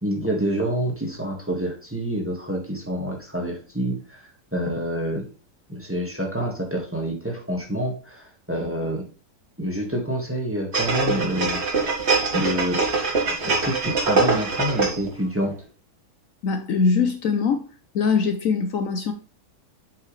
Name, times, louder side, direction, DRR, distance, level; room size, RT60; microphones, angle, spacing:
voice 1, 0.0-5.3 5.7-9.1 9.6-11.6 12.3-12.8 13.4-15.5, equal, 10° right, 1 dB, 1.5 m, -27 dB
sound 1, 10.7-15.1 15.5-15.6, right 4 dB, 45° right, 1.7 m, -23 dB
voice 2, 16.4-17.6 17.9-19.1, left 5 dB, 65° left, 8 dB, 1.1 m, -22 dB
7.7 x 5.5 x 3.2 m, 0.36 s
omnidirectional pair, 1.6 m